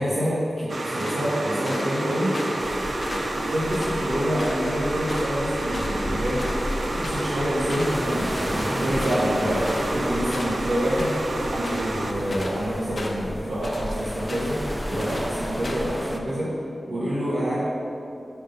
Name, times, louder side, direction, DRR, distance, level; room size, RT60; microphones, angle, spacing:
voice 1, 0.0-2.3 3.3-16.5 16.9-17.6, equal, 90° right, -11 dB, 1.4 m, -27 dB
sound 1, 0.7-12.1, right 2 dB, 55° right, 0.5 m, -29 dB
sound 2, 1.0-2.0 2.3-2.7 3.0-4.7 5.1-5.4 5.7-6.0 6.2-10.1 10.3-11.2 11.5-12.6 13.0-13.9 14.3-14.7 15.0-15.3 15.6-15.9, left 1 dB, 50° left, 0.8 m, -36 dB
sound 3, 2.6-16.2, equal, 5° right, 0.5 m, -33 dB
5.7 x 4.9 x 5.2 m, 2.7 s
wide cardioid pair, 105°, 0 cm